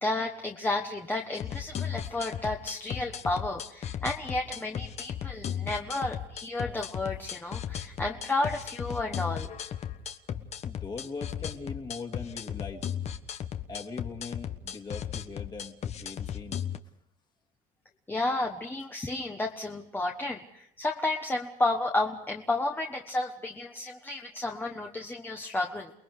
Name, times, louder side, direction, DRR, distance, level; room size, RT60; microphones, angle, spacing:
voice 1, 0.0-9.5 18.1-25.9, left 2 dB, 10° left, 2 dB, 1.3 m, -32 dB
sound 1, 1.4-16.8, left 9 dB, 45° left, 1.3 m, -36 dB
voice 2, 10.6-12.8 13.7-16.6, left 4 dB, 25° left, 4 dB, 2.5 m, -40 dB
29.0 x 20.5 x 4.9 m, 0.71 s
cardioid pair, 125°, 16 cm